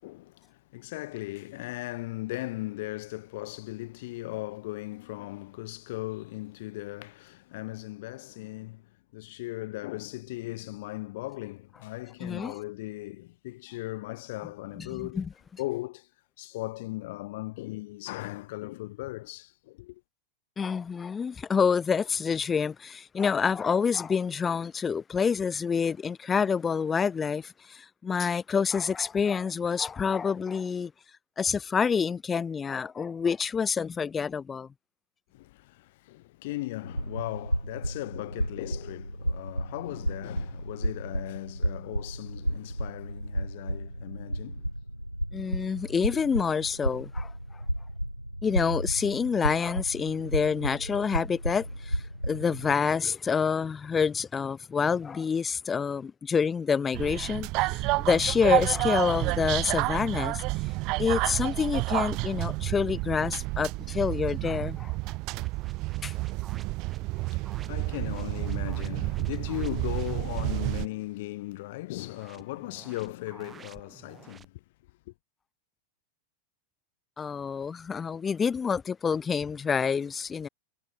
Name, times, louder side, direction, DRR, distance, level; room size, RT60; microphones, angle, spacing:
voice 1, 0.0-15.3 15.6-16.1 16.4-20.0 35.3-44.7 67.3-74.6 75.1-75.2, left 19 dB, 50° left, 7.6 m, -38 dB
voice 2, 12.2-12.5 14.8-15.3 20.6-30.9 31.4-34.7 45.3-47.3 48.4-60.4 61.0-65.1 66.0-66.1 77.2-80.5, left 6 dB, 20° left, 2.2 m, -27 dB
sound 1, 36.8-52.7, equal, 90° right, 4.2 m, -33 dB
sound 2, 56.9-70.9, right 23 dB, 40° right, 0.6 m, -30 dB
sound 3, 65.3-70.6 72.0-74.5, right 6 dB, 20° right, 7.7 m, -52 dB
figure-of-eight pair, 90°, 0 cm